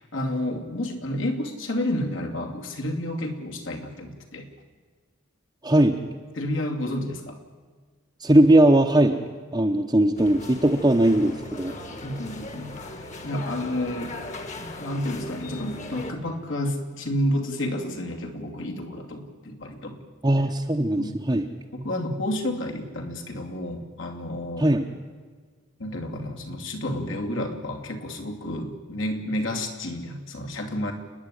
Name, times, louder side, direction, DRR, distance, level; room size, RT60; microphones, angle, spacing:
voice 1, 0.0-4.5 6.3-7.4 12.0-14.2 14.8-20.0 21.0-21.2 21.7-24.7 25.8-30.9, left 1 dB, 65° left, 2 dB, 2.7 m, -30 dB
voice 2, 5.6-6.0 8.2-9.2 9.5-11.7 20.2-21.5 24.6-24.9, right 1 dB, 20° right, 0 dB, 1.0 m, -19 dB
sound 1, 10.2-16.1, left 2 dB, 35° left, 1.8 m, -38 dB
30.0 x 10.0 x 10.0 m, 1.5 s
head